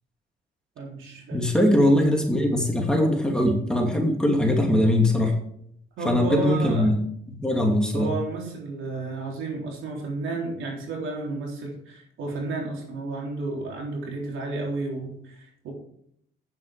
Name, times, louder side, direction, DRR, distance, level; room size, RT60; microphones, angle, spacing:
voice 1, 0.8-1.5 6.0-6.9 7.9-15.7, right 3 dB, 80° right, -1 dB, 3.5 m, -32 dB
voice 2, 1.3-5.4 6.0-7.0 7.3-8.1, left 1 dB, 5° left, 1 dB, 2.5 m, -21 dB
9.0 x 7.4 x 5.0 m, 0.69 s
cardioid pair, 90°, 20 cm